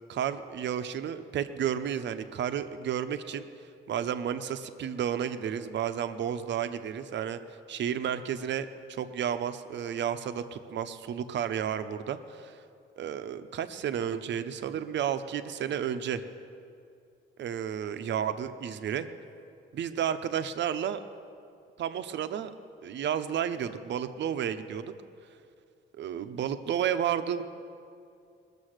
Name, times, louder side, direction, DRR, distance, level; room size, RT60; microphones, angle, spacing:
voice 1, 0.1-3.4 3.9-7.4 7.7-12.6 13.0-16.2 17.4-19.1 19.7-21.0 21.8-22.5 22.8-24.9 26.0-27.4, right 9 dB, 65° right, 10 dB, 0.8 m, -32 dB
20.0 x 6.9 x 6.5 m, 2.4 s
cardioid pair, 90°, 20 cm